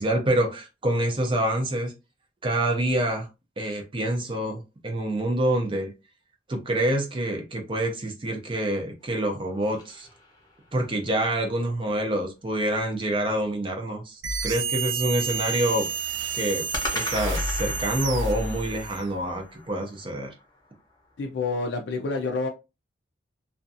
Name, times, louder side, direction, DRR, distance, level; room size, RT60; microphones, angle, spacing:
voice 1, 0.0-1.9 2.4-3.3 3.6-5.9 6.5-10.1 10.7-15.9 16.3-16.7 16.9-20.3, right 1 dB, 30° right, 0.5 m, -26 dB
sound 1, 9.0-10.9 16.7-21.0, left 2 dB, 20° left, 0.7 m, -38 dB
sound 2, 14.2-19.1, right 4 dB, 85° right, 0.5 m, -30 dB
voice 2, 21.2-22.5, left 3 dB, 65° left, 0.4 m, -28 dB
2.5 x 2.3 x 2.6 m
head